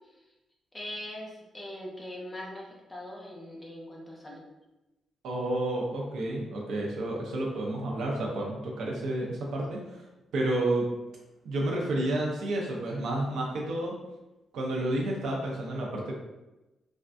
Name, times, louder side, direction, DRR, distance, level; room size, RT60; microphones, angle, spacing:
voice 1, 0.7-4.4, left 1 dB, 15° left, -2 dB, 0.6 m, -41 dB
voice 2, 5.2-10.0 10.3-10.9 11.4-14.0 14.5-16.1, right 1 dB, 85° right, -2 dB, 0.6 m, -30 dB
3.4 x 2.2 x 2.5 m, 1.0 s
cardioid pair, 140°, 0 cm